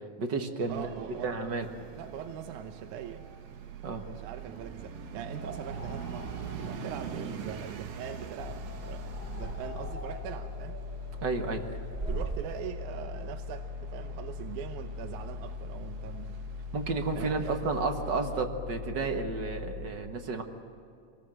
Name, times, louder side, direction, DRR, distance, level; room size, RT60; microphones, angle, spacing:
voice 1, 0.2-0.9 1.2-1.7 3.8-4.0 11.2-11.8 16.7-20.4, right 3 dB, 45° right, 5 dB, 1.7 m, -31 dB
sound 1, 0.6-18.4, right 7 dB, 65° right, 2.2 m, -45 dB
voice 2, 0.7-1.3 1.9-3.3 4.1-10.8 12.1-16.4 17.2-17.6, right 8 dB, 80° right, 6 dB, 2.4 m, -42 dB
sound 2, 5.3-12.6, right 2 dB, 15° right, 2.3 m, -42 dB
sound 3, 8.4-19.9, left 4 dB, 65° left, 2.5 m, -40 dB
27.0 x 20.0 x 7.8 m, 2.5 s
omnidirectional pair, 3.5 m